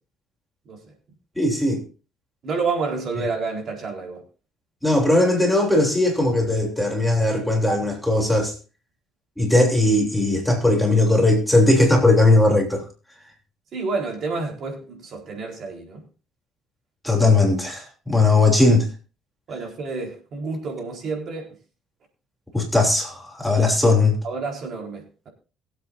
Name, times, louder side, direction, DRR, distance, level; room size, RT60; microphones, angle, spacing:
voice 1, 1.4-1.8 4.8-8.5 9.4-12.8 17.0-18.9 22.5-24.2, left 2 dB, 5° left, 3.2 m, -18 dB
voice 2, 2.4-4.2 13.7-16.0 19.5-21.6 24.2-25.3, right 4 dB, 50° right, 4.2 m, -29 dB
22.0 x 8.2 x 2.6 m
cardioid pair, 115°, 0 cm